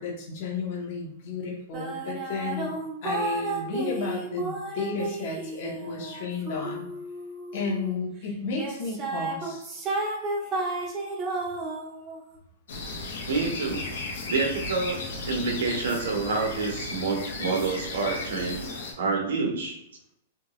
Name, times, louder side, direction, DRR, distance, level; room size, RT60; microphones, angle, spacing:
voice 1, 0.0-2.7 3.0-6.9 7.5-9.7, left 4 dB, 40° left, -1 dB, 1.0 m, -32 dB
sound 1, 1.7-8.0 8.5-12.2, right 2 dB, 15° right, 0.7 m, -32 dB
sound 2, 12.7-18.9, left 3 dB, 75° left, 1.0 m, -35 dB
voice 2, 13.3-13.8 14.3-18.6 19.0-19.8, right 4 dB, 85° right, 1 dB, 1.2 m, -28 dB
3.4 x 2.9 x 3.0 m, 0.77 s
supercardioid pair, 180°, 0 cm